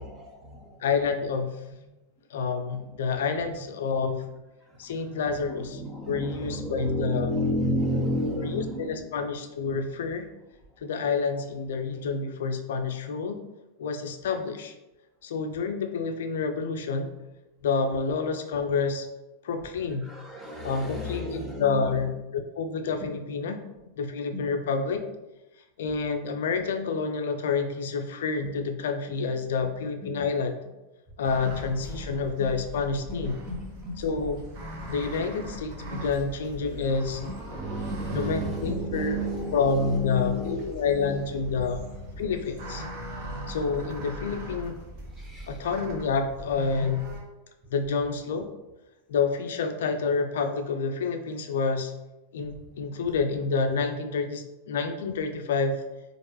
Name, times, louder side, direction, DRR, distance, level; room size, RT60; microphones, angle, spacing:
voice 1, 0.0-1.2 2.9-3.5 4.7-9.4 20.0-22.1 23.0-23.1 23.4-23.5 24.3-24.4 30.0-30.3 33.1-34.1 36.0-36.1 37.2-42.3 45.2-45.6 55.0-55.2, equal, 5° right, -3 dB, 0.9 m, -33 dB
voice 2, 0.8-1.6 2.3-4.3 4.8-5.8 6.1-7.3 8.4-10.3 10.8-13.4 13.8-14.7 15.2-17.1 17.6-19.1 19.4-20.1 20.6-23.6 24.0-25.0 25.8-30.6 31.2-33.4 34.0-34.4 34.9-37.2 38.1-39.2 39.5-41.9 42.2-42.8 43.5-44.8 45.5-47.1 47.7-48.5 49.1-51.9 52.3-55.8, left 5 dB, 60° left, 6 dB, 0.4 m, -28 dB
sound 1, 31.2-47.2, right 1 dB, 45° right, 0.9 m, -40 dB
4.3 x 2.4 x 3.2 m, 1.0 s
figure-of-eight pair, 90°, 0 cm